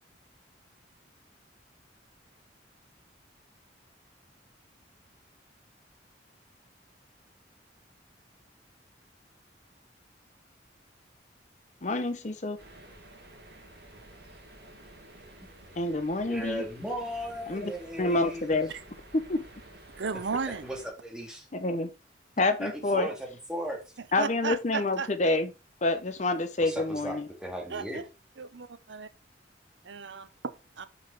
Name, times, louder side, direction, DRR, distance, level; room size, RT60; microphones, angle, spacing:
voice 1, 11.8-12.6 15.8-16.6 17.5-17.7 18.0-18.7 19.1-19.4 21.5-21.9 22.4-23.1 24.1-25.5 25.8-27.3, left 2 dB, 40° left, 0.7 m, -27 dB
sound 1, 12.6-20.9, right 1 dB, 65° right, 2.1 m, -51 dB
voice 2, 16.3-18.6 20.5-21.5 22.6-23.9 26.6-28.0, equal, 5° right, 2.1 m, -37 dB
voice 3, 20.0-20.6 24.2-25.1 27.7-28.0 28.4-29.1 29.8-30.8, right 5 dB, 80° right, 0.7 m, -34 dB
6.2 x 5.4 x 4.5 m
head